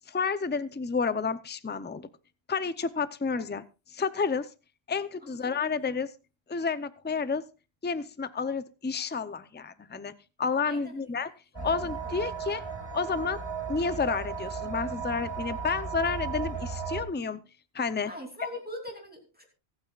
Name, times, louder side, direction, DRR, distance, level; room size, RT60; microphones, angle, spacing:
voice 1, 0.1-2.1 2.5-3.6 3.9-4.5 4.9-6.1 6.5-7.4 7.8-10.1 10.4-11.3 11.6-12.6 12.9-13.4 13.7-17.4 17.7-18.1, left 5 dB, 15° left, 13 dB, 0.5 m, -30 dB
voice 2, 5.2-5.9 10.6-11.0 11.5-12.2 18.1-19.4, left 1 dB, 10° right, 1 dB, 2.9 m, -43 dB
sound 1, 11.5-17.0, right 5 dB, 25° right, 1.6 m, -35 dB
24.5 x 8.9 x 2.4 m, 0.31 s
omnidirectional pair, 1.1 m